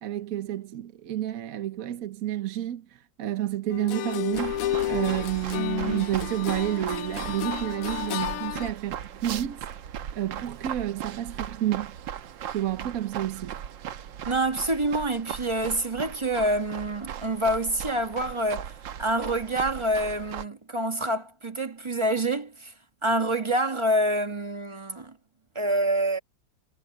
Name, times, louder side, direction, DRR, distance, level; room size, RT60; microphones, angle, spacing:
voice 1, 0.0-4.6 4.9-9.7 10.2-12.0 12.5-13.5, right 13 dB, 60° right, 1.1 m, -30 dB
sound 1, 3.7-8.7, left 14 dB, 85° left, 0.7 m, -31 dB
sound 2, 4.3-20.4, right 9 dB, 90° right, 1.7 m, -38 dB
voice 2, 14.3-22.7 23.0-25.2 25.5-26.2, right 1 dB, 20° right, 1.1 m, -27 dB
omnidirectional pair, 2.0 m